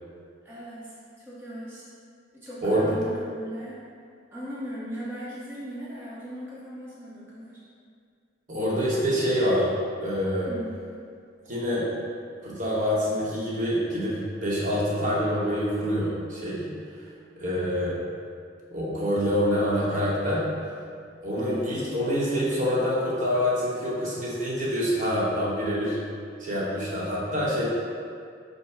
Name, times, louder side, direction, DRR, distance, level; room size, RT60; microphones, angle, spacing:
voice 1, 0.4-1.9 2.3-3.8 4.3-7.6 10.5-10.8 21.4-21.7 23.5-23.6 27.5-27.6, equal, 10° right, -10 dB, 0.7 m, -38 dB
voice 2, 8.5-9.7 10.0-10.5 11.5-11.9 12.4-16.7 17.3-18.0 18.7-20.5 21.2-26.0 26.4-27.6, equal, 40° right, -7 dB, 0.9 m, -26 dB
5.3 x 2.0 x 4.6 m, 2.3 s
head